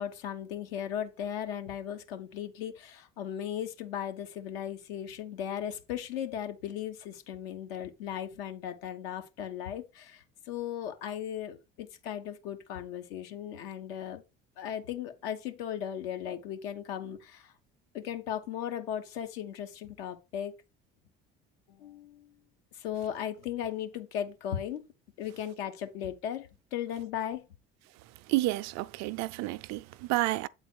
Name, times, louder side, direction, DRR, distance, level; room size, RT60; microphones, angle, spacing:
voice 1, 0.0-14.2 14.6-17.5 17.9-20.5 21.7-22.3 22.7-24.9 25.2-27.5, left 10 dB, 80° left, 1.2 m, -37 dB
voice 2, 28.3-30.5, right 18 dB, 60° right, 0.5 m, -30 dB
8.1 x 4.0 x 4.5 m
hypercardioid pair, 65°, 30 cm